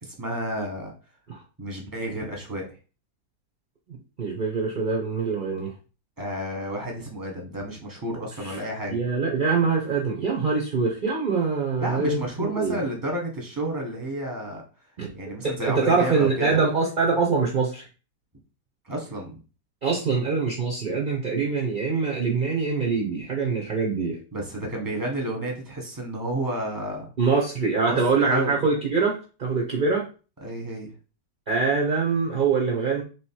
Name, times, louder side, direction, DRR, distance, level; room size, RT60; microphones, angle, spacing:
voice 1, 0.0-0.9 1.6-2.8 6.2-9.0 11.8-14.6 15.1-16.6 18.8-19.4 24.3-27.1 27.8-28.6 30.4-30.9, right 1 dB, 15° right, 0 dB, 1.1 m, -31 dB
voice 2, 4.2-5.7 8.4-12.8 15.0-15.2 15.4-17.9 19.8-24.2 27.2-30.1 31.5-33.0, right 4 dB, 45° right, -1 dB, 0.7 m, -24 dB
3.4 x 3.1 x 4.5 m, 0.35 s
omnidirectional pair, 1.9 m